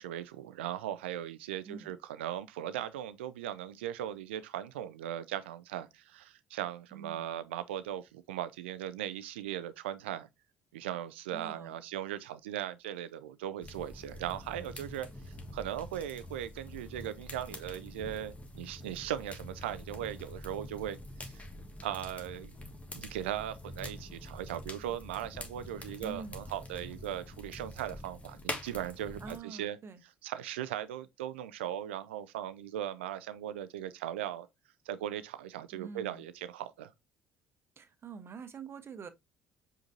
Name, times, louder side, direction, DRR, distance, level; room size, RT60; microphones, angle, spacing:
voice 1, 0.0-10.3 10.7-21.4 21.8-22.5 22.9-29.8 30.0-34.5 34.9-36.9, right 11 dB, 85° right, 0.3 m, -38 dB
voice 2, 6.9-7.4 11.3-11.8 26.0-26.4 29.2-30.0 35.7-36.2 37.8-39.1, right 5 dB, 45° right, 0.9 m, -46 dB
sound 1, 13.6-29.4, left 1 dB, 25° left, 1.3 m, -45 dB
5.1 x 3.8 x 2.6 m
hypercardioid pair, 60°, 6 cm